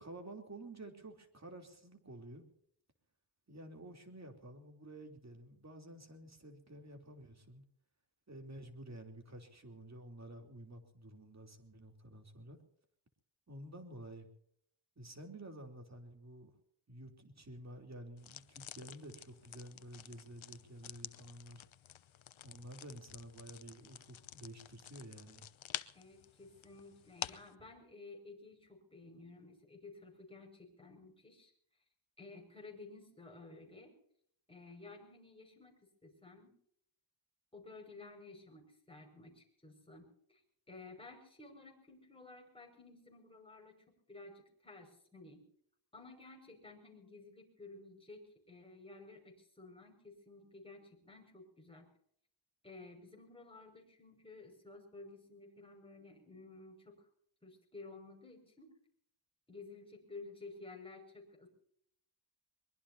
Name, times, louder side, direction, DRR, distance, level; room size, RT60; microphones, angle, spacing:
voice 1, 0.0-2.5 3.5-7.6 8.3-12.6 13.5-14.3 15.0-16.5 16.9-21.6 22.4-25.4, right 1 dB, 30° right, 4 dB, 3.4 m, -51 dB
sound 1, 18.2-27.5, left 10 dB, 70° left, 0.9 m, -49 dB
voice 2, 25.9-31.5 32.2-33.9 34.5-36.5 37.5-40.4 40.7-45.4 45.9-51.9 52.6-57.1 57.4-58.7 59.5-61.5, left 3 dB, 10° left, 0 dB, 5.9 m, -54 dB
23.5 x 22.0 x 2.8 m, 0.67 s
wide cardioid pair, 100°, 49 cm